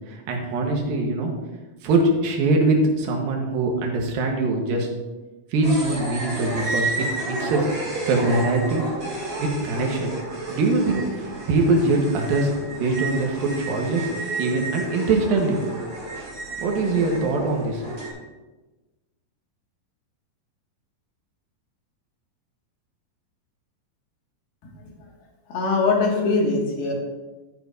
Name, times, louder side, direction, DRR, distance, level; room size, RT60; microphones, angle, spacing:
voice 1, 0.1-1.3 1.8-4.9 5.5-7.7 8.0-8.8 9.4-10.1 10.5-14.1 14.4-15.6 16.6-17.8, right 2 dB, 75° right, 1 dB, 3.0 m, -23 dB
sound 1, 5.6-18.1, right 2 dB, 30° right, 2.6 m, -31 dB
voice 2, 25.5-26.9, left 3 dB, 80° left, -2 dB, 3.8 m, -21 dB
12.0 x 9.9 x 2.6 m, 1.2 s
omnidirectional pair, 4.2 m